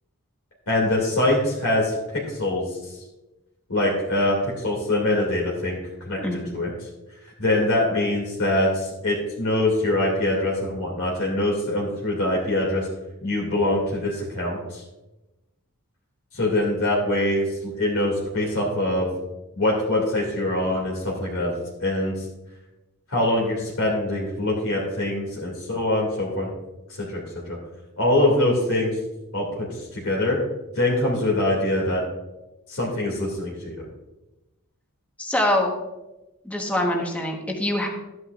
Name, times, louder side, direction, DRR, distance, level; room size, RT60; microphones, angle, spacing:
voice 1, 0.7-2.9 3.7-6.9 7.4-12.9 13.2-14.8 16.3-19.1 19.6-21.5 21.8-22.1 23.1-26.5 27.0-27.2 27.5-27.6 28.0-28.9 29.3-30.4 30.8-32.0 32.7-33.7, left 1 dB, 65° left, -3 dB, 2.3 m, -24 dB
voice 2, 35.2-35.7 36.4-37.9, left 1 dB, 5° left, 0 dB, 1.1 m, -24 dB
13.0 x 9.3 x 2.4 m, 1.0 s
head